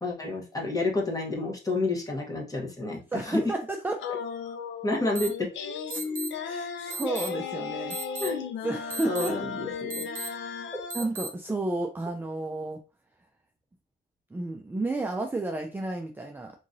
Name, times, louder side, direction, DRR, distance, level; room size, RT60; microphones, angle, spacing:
voice 1, 0.0-3.0 3.3-3.4 4.8-5.5 8.2-8.4 9.0-10.1, left 2 dB, 15° left, -1 dB, 1.2 m, -29 dB
voice 2, 3.1-4.0 5.9-6.1 6.4-8.0 8.6-9.5 10.1-10.5 10.9-12.8 14.3-16.5, right 2 dB, 10° right, 2 dB, 0.4 m, -32 dB
sound 1, 4.0-11.0, left 6 dB, 70° left, 0.6 m, -35 dB
sound 2, 5.1-5.3 5.9-6.3 6.9-7.3 7.9-8.3 8.9-9.3 9.9-10.3 10.9-11.3, right 3 dB, 45° right, 0.9 m, -35 dB
3.8 x 2.9 x 2.6 m, 0.34 s
cardioid pair, 90°, 20 cm